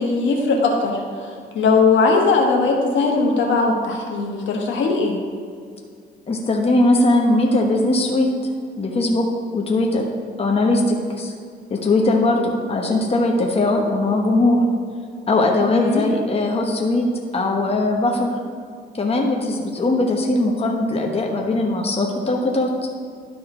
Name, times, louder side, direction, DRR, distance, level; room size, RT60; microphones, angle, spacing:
voice 1, 0.0-5.2 15.6-16.0, left 4 dB, 70° left, 0 dB, 1.3 m, -19 dB
voice 2, 6.3-8.3 8.8-9.3 9.5-10.1 10.4-11.3 11.7-14.6 15.3-17.0 17.3-18.3 19.0-22.9, left 2 dB, 30° left, 0 dB, 1.1 m, -20 dB
12.0 x 4.2 x 3.8 m, 2.2 s
cardioid pair, 90°, 20 cm